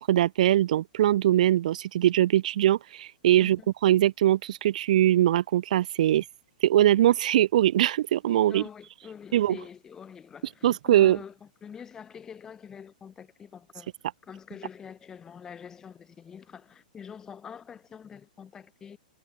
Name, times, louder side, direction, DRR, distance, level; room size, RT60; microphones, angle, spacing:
voice 1, 0.0-6.2 6.6-8.6 9.3-9.6 10.6-11.2, right 12 dB, 60° right, 0.4 m, -22 dB
voice 2, 8.5-13.9 14.2-19.0, left 7 dB, 10° left, 5.4 m, -45 dB
hypercardioid pair, 165°, 5 cm